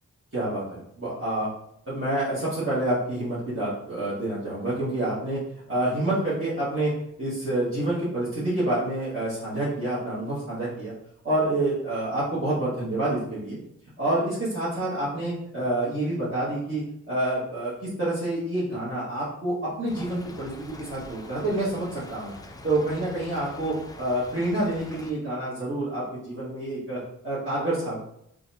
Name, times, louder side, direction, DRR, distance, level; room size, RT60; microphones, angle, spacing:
voice 1, 0.3-1.5 1.9-5.4 5.7-6.9 7.2-10.9 11.2-13.6 14.0-20.5 20.8-22.3 22.6-28.0, right 1 dB, 40° right, -12 dB, 1.4 m, -28 dB
Stream / Trickle dribble, 19.9-25.1, left 2 dB, 10° left, 0.4 m, -45 dB
3.9 x 2.4 x 2.7 m, 0.74 s
cardioid pair, 65°, 32 cm